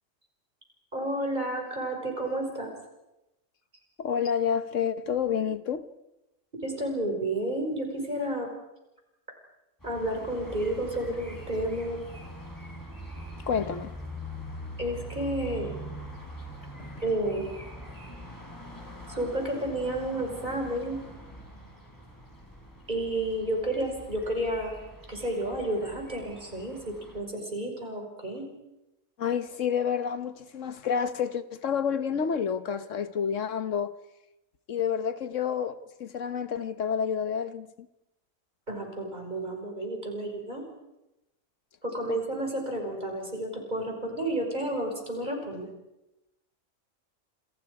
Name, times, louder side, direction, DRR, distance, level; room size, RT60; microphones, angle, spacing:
voice 1, 0.9-2.7 6.6-8.5 9.8-12.0 14.8-15.8 17.0-17.5 19.1-21.0 22.9-24.8 25.1-28.5 38.7-40.6 41.8-45.7, right 1 dB, 35° right, 5.7 m, -31 dB
voice 2, 4.0-5.8 13.5-13.9 16.8-17.0 29.2-33.9 34.7-37.7 42.1-42.2, left 7 dB, 65° left, 1.4 m, -29 dB
sound 1, 9.8-27.2, equal, 15° left, 4.9 m, -43 dB
29.0 x 26.5 x 4.9 m
omnidirectional pair, 1.4 m